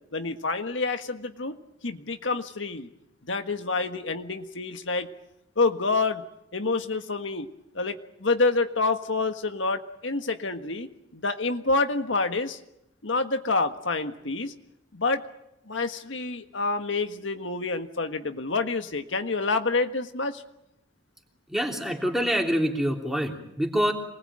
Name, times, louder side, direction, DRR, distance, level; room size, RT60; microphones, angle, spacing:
voice 1, 0.1-1.6 1.8-2.9 3.3-5.1 5.6-6.2 6.5-7.5 7.7-10.9 11.1-12.6 13.0-14.5 14.9-15.2 15.7-20.4, left 3 dB, 80° left, 7 dB, 1.6 m, -27 dB
voice 2, 21.5-23.9, equal, ahead, 2 dB, 3.2 m, -26 dB
27.0 x 20.5 x 8.9 m, 0.83 s
head